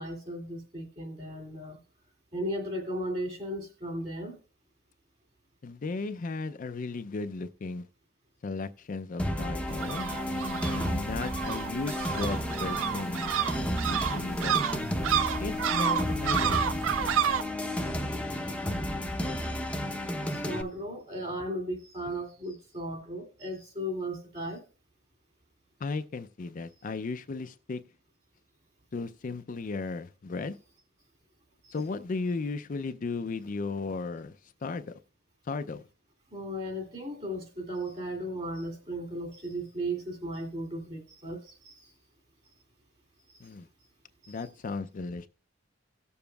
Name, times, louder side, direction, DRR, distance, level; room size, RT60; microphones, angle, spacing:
voice 1, 0.0-1.8 2.3-4.4 18.8-19.0 20.3-24.6 36.3-41.9, right 1 dB, 35° right, 2.4 m, -36 dB
voice 2, 5.6-7.9 8.4-13.3 13.8-14.5 15.4-16.7 25.8-27.8 28.9-30.6 31.7-34.4 34.6-34.9 35.5-35.8 43.4-43.7 44.3-45.3, left 3 dB, 45° left, 0.4 m, -35 dB
sound 1, 9.2-20.6, left 1 dB, 5° left, 0.7 m, -32 dB
sound 2, 9.7-17.4, right 8 dB, 90° right, 0.4 m, -30 dB
17.5 x 6.9 x 2.3 m
head